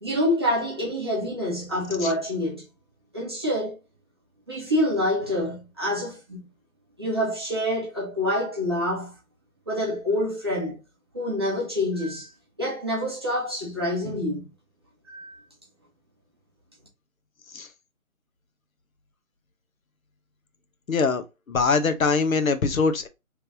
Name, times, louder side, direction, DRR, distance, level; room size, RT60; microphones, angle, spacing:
voice 1, 0.0-2.6 3.1-3.8 4.5-6.5 7.0-9.2 9.7-10.8 11.1-12.3 12.6-14.5 15.1-15.4, left 1 dB, 20° right, 0.8 m, -27 dB
voice 2, 20.9-23.1, left 4 dB, 70° left, 0.8 m, -23 dB
3.2 x 3.2 x 2.5 m
figure-of-eight pair, 165°, 42 cm